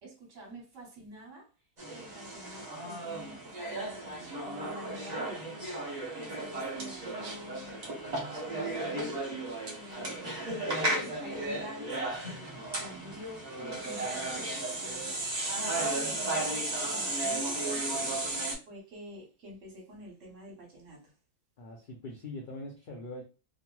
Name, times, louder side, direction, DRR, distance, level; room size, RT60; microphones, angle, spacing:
voice 1, 0.0-1.5 1.9-5.4 6.2-7.8 8.4-9.3 9.6-12.0 12.2-13.5 13.8-15.1 15.5-17.7 18.7-21.1, equal, 60° right, 1.4 m, -48 dB
sound 1, 1.8-18.5, right 2 dB, 35° right, 0.7 m, -34 dB
voice 2, 21.6-23.2, left 2 dB, 65° left, 0.5 m, -42 dB
2.9 x 2.5 x 2.2 m
omnidirectional pair, 1.6 m